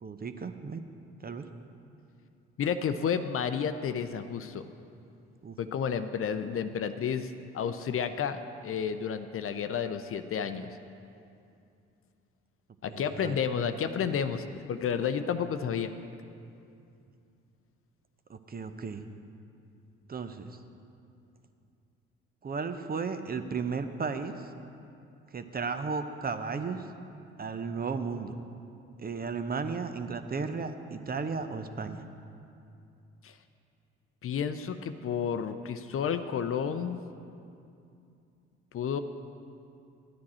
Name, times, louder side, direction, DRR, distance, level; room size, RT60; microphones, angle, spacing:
voice 1, 0.0-0.8 1.2-1.5 5.4-5.6 12.9-13.4 18.3-19.0 20.1-20.6 22.4-24.3 25.3-26.9 27.4-28.4 29.0-32.0, right 5 dB, 30° right, 9 dB, 0.7 m, -34 dB
voice 2, 2.6-4.6 5.6-10.7 12.8-15.9 33.2-33.3 34.2-37.0 38.7-39.0, left 7 dB, 45° left, 10 dB, 0.6 m, -31 dB
11.5 x 9.5 x 4.3 m, 2.6 s
hypercardioid pair, 50°, 31 cm